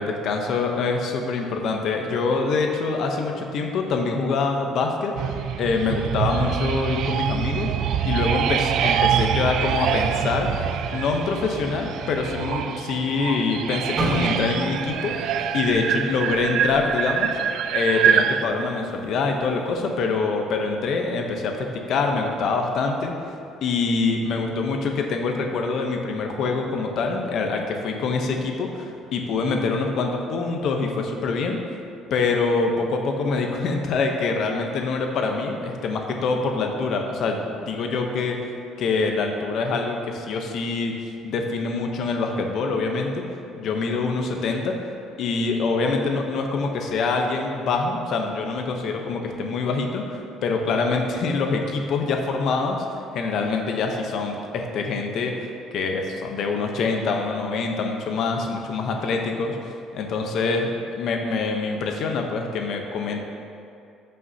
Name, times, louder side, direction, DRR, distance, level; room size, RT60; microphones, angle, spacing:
voice 1, 0.0-5.1 5.6-7.7 8.0-10.5 10.9-17.3 17.7-23.1 23.6-31.6 32.1-38.4 38.8-40.9 41.2-43.2 43.5-44.7 45.2-52.8 53.1-59.6 59.9-63.2, left 4 dB, 50° left, 3 dB, 0.8 m, -25 dB
sound 1, 5.2-18.4, right 8 dB, 60° right, 0.3 m, -25 dB
sound 2, 14.0-18.0 18.4-18.6 19.3-19.6, right 2 dB, 30° right, 1.2 m, -32 dB
13.0 x 5.5 x 2.8 m, 2.5 s
cardioid pair, 165°, 0 cm